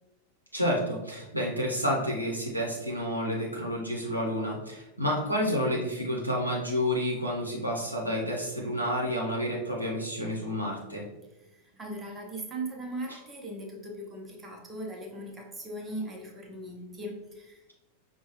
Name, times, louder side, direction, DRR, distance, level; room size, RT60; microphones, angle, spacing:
voice 1, 0.5-11.0, equal, 90° right, -3 dB, 0.7 m, -30 dB
voice 2, 11.3-17.6, right 1 dB, 15° right, 0 dB, 0.8 m, -39 dB
5.3 x 2.3 x 3.0 m, 0.96 s
figure-of-eight pair, 90°, 0 cm